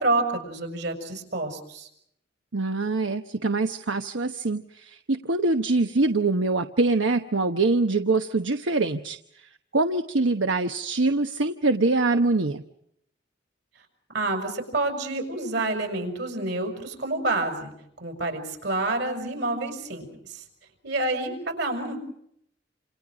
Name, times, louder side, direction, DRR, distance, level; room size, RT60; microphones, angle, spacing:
voice 1, 0.0-1.9 14.1-17.7 18.0-20.4 20.8-22.0, right 2 dB, 65° right, 5 dB, 6.5 m, -28 dB
voice 2, 2.5-12.6, right 3 dB, 85° right, 7 dB, 1.1 m, -24 dB
29.0 x 28.0 x 5.1 m, 0.72 s
head